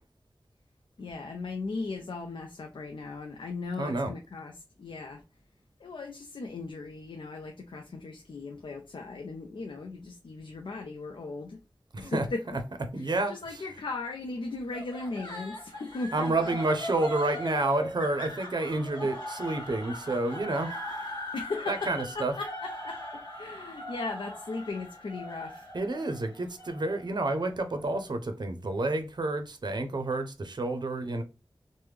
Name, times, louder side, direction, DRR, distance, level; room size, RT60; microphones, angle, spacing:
voice 1, 1.0-5.2 5.8-11.6 12.0-12.4 13.0-16.3 21.3-25.7, left 3 dB, 85° left, 0.4 m, -37 dB
voice 2, 3.8-4.1 11.9-12.3 12.9-13.3 16.1-21.1 21.7-22.3 25.7-31.2, right 2 dB, 60° right, 0.5 m, -29 dB
sound 1, 14.7-27.9, left 1 dB, 60° left, 1.1 m, -40 dB
3.1 x 2.1 x 3.2 m
wide cardioid pair, 60°, 8 cm